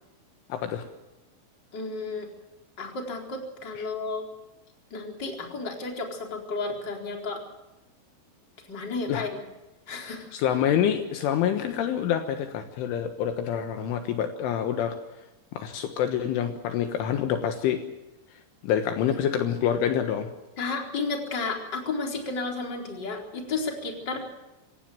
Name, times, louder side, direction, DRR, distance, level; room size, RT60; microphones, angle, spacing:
voice 1, 0.5-0.8 9.1-9.3 10.3-15.0 15.5-17.8 18.6-20.3, left 9 dB, 75° left, 6 dB, 3.7 m, -26 dB
voice 2, 1.7-2.3 2.8-4.2 4.9-7.4 8.7-9.3 9.9-10.3 20.6-24.2, left 3 dB, 20° left, 1 dB, 4.1 m, -32 dB
27.5 x 17.0 x 7.7 m, 1.0 s
omnidirectional pair, 5.9 m